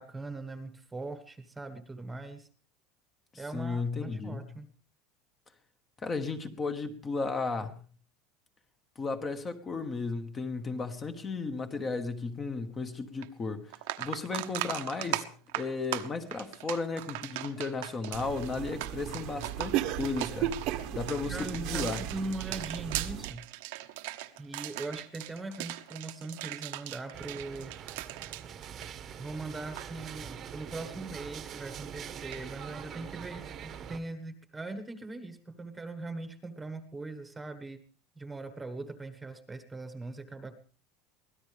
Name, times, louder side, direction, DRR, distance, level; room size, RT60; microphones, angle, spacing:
voice 1, 0.0-2.5 3.3-4.7 21.3-23.4 24.4-27.7 29.2-37.8 38.2-40.6, right 2 dB, 10° right, 1.4 m, -40 dB
voice 2, 3.3-4.5 6.0-7.7 9.0-13.7 14.0-15.3 15.5-22.0, left 4 dB, 20° left, 1.4 m, -34 dB
sound 1, 13.2-13.3 13.7-29.3 29.6-29.9 32.3-32.4, right 17 dB, 75° right, 1.3 m, -39 dB
sound 2, 18.1-23.3, right 12 dB, 50° right, 1.2 m, -35 dB
sound 3, 27.1-34.0, right 8 dB, 30° right, 1.2 m, -43 dB
24.0 x 17.0 x 3.4 m
cardioid pair, 170°, 0 cm